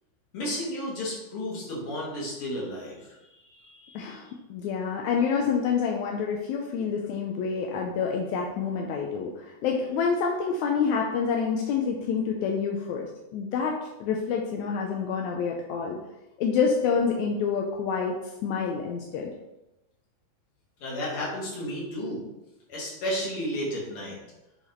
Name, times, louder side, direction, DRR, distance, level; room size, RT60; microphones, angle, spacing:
voice 1, 0.3-3.2 3.4-4.2 20.8-22.2 22.7-24.2, equal, 50° left, -4 dB, 2.8 m, -33 dB
voice 2, 3.9-16.0 16.4-18.2 18.4-19.3, left 6 dB, 80° left, 1 dB, 2.0 m, -27 dB
8.1 x 4.0 x 4.4 m, 0.95 s
omnidirectional pair, 3.4 m